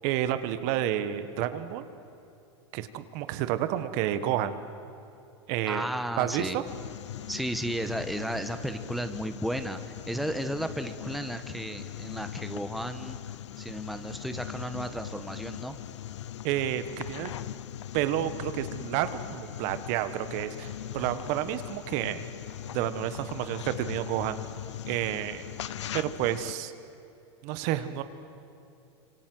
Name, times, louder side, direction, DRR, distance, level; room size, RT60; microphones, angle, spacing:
voice 1, 0.0-1.8 2.7-4.6 5.5-5.9 6.2-6.6 16.4-17.3 17.9-22.2 22.7-24.4 24.9-25.4 25.9-26.7 27.4-28.0, right 12 dB, 55° right, 11 dB, 1.5 m, -30 dB
voice 2, 5.7-6.6 7.3-13.2 13.6-15.8, right 1 dB, ahead, 8 dB, 1.4 m, -34 dB
sound 1, 6.6-26.5, left 11 dB, 85° left, 0.7 m, -40 dB
27.0 x 26.0 x 7.9 m, 2.8 s
hypercardioid pair, 105°, 15 cm